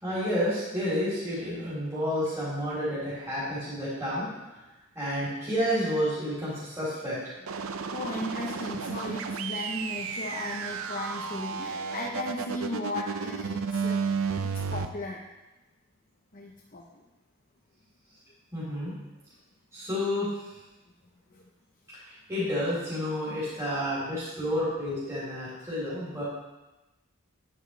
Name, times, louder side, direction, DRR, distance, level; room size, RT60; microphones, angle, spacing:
voice 1, 0.0-4.3 5.0-7.3 18.5-18.9 19.7-20.3 22.0-26.2, equal, 15° right, -11 dB, 3.8 m, -30 dB
sound 1, 7.5-14.9, right 5 dB, 60° right, 0.6 m, -32 dB
voice 2, 7.6-14.0 14.4-15.2 16.3-16.8 21.3-21.4 23.8-23.9, left 2 dB, 40° left, -2 dB, 0.9 m, -36 dB
10.0 x 9.7 x 3.4 m, 1.1 s
head